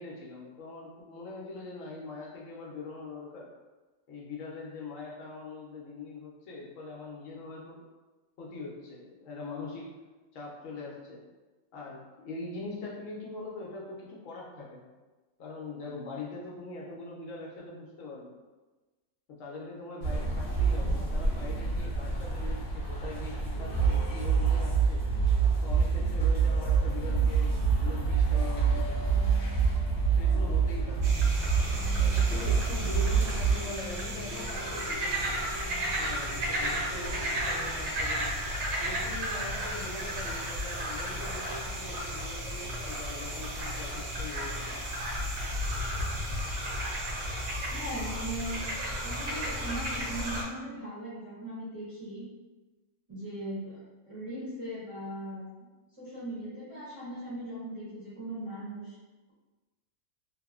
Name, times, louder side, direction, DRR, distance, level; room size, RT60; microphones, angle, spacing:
voice 1, 0.0-3.5 4.1-7.8 8.4-9.9 10.3-11.2 11.7-14.9 15.4-18.4 19.3-25.1 25.6-29.0 30.2-31.1 32.0-35.3 36.0-38.3 38.8-44.9, left 3 dB, 80° left, -3 dB, 1.0 m, -42 dB
sound 1, 20.0-33.6, right 5 dB, 60° left, 0.9 m, -26 dB
sound 2, 23.5-38.0, equal, 30° left, 0.6 m, -46 dB
sound 3, 31.0-50.4, equal, 65° right, 0.9 m, -33 dB
voice 2, 47.7-48.6 49.0-52.2 53.1-53.8 54.1-55.4 56.0-58.9, right 1 dB, 35° right, -11 dB, 0.6 m, -39 dB
2.9 x 2.0 x 2.3 m, 1.2 s
omnidirectional pair, 1.3 m